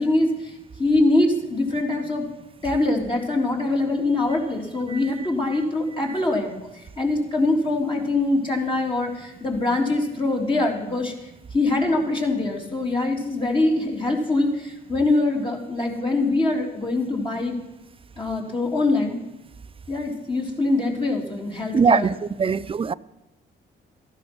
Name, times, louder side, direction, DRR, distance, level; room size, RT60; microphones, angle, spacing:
voice 1, 0.0-2.3 2.6-11.1 11.5-17.6 18.2-19.2 19.9-22.1 22.4-22.5, left 2 dB, 25° left, 3.4 m, -23 dB
voice 2, 21.7-22.1 22.4-22.9, right 6 dB, 30° right, 0.5 m, -21 dB
14.5 x 10.5 x 6.2 m
cardioid pair, 90°, 20 cm